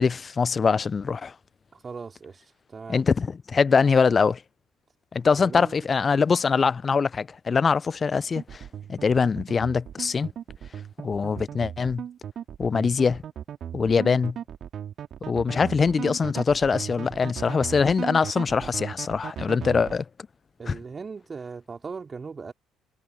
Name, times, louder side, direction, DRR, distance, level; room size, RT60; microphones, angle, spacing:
voice 1, 0.0-1.3 2.9-4.4 5.1-8.6 8.9-10.3 11.0-12.0 12.6-13.2 13.7-14.4 15.3-20.0 20.7-20.8, left 5 dB, 35° left, 0.8 m, -23 dB
voice 2, 1.7-3.0 5.4-5.9 20.6-22.5, right 5 dB, 35° right, 3.8 m, -39 dB
sound 1, 8.3-19.9, right 9 dB, 50° right, 2.9 m, -36 dB
figure-of-eight pair, 50°, 0 cm